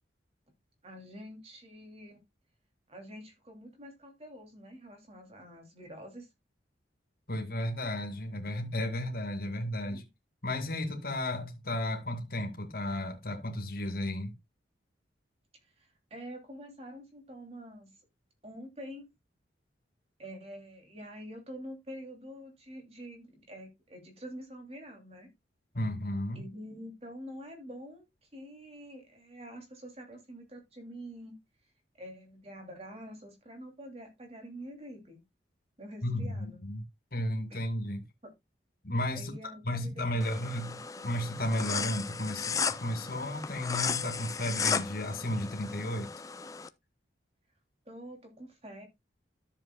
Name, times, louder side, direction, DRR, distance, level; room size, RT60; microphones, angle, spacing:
voice 1, 0.8-2.2 2.9-6.3 9.9-10.0 15.6-17.9 18.4-19.1 20.2-25.3 26.3-28.1 28.3-31.4 32.0-35.2 35.8-36.6 39.1-41.1 47.9-48.9, equal, 35° right, 2.9 m, -46 dB
voice 2, 7.3-10.0 10.4-14.3 25.7-26.4 36.0-36.8 37.1-38.0 38.8-39.3 39.6-40.8 41.0-46.1, left 1 dB, 50° left, 2.2 m, -33 dB
sound 1, 40.2-46.7, left 5 dB, 20° left, 0.4 m, -35 dB
13.0 x 7.1 x 2.3 m
head